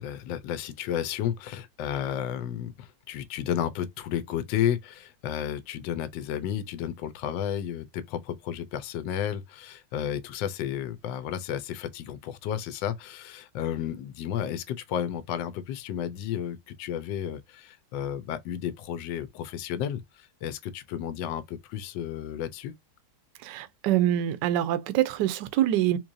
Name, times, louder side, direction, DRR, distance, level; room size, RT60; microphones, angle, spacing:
voice 1, 0.0-22.7, left 10 dB, 75° left, 1.3 m, -32 dB
voice 2, 23.4-26.0, right 12 dB, 75° right, 1.2 m, -25 dB
3.9 x 3.0 x 2.6 m
omnidirectional pair, 2.1 m